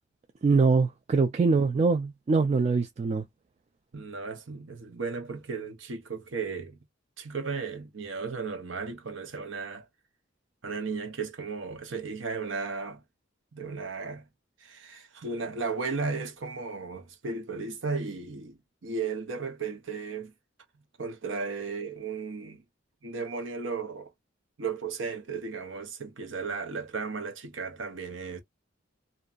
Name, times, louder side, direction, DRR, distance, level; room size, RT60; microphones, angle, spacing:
voice 1, 0.4-3.2, right 4 dB, 35° right, 0.3 m, -23 dB
voice 2, 3.9-6.8 7.2-9.9 10.6-13.0 13.5-14.3 14.6-20.3 21.0-22.6 23.0-24.1 24.6-28.4, right 4 dB, 85° right, 0.8 m, -35 dB
2.7 x 2.3 x 2.4 m
head